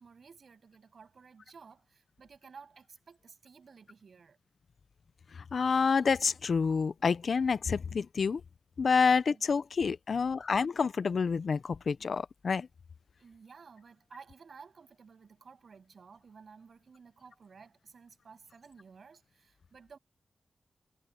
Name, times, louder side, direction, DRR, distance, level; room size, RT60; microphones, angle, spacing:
voice 1, 0.0-4.4 9.3-9.4 10.1-10.4 13.2-20.0, right 5 dB, 70° right, 7.1 m, -54 dB
voice 2, 5.5-8.4 8.8-12.7, left 5 dB, 70° left, 0.6 m, -28 dB
cardioid pair, 60°, 0 cm